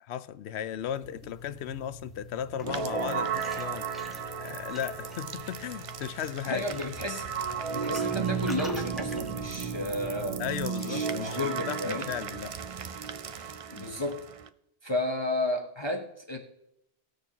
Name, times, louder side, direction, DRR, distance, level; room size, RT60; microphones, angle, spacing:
voice 1, 0.0-3.9 4.4-6.6 10.4-12.5, left 10 dB, 85° left, 0.8 m, -36 dB
sound 1, 0.7-10.7, left 1 dB, ahead, 1.0 m, -46 dB
sound 2, 2.6-14.5, right 7 dB, 50° right, 0.4 m, -34 dB
voice 2, 6.4-7.3 7.7-10.4 10.8-12.1 13.7-14.2 14.8-16.4, left 2 dB, 25° left, 0.9 m, -32 dB
18.5 x 6.6 x 2.8 m
omnidirectional pair, 1.1 m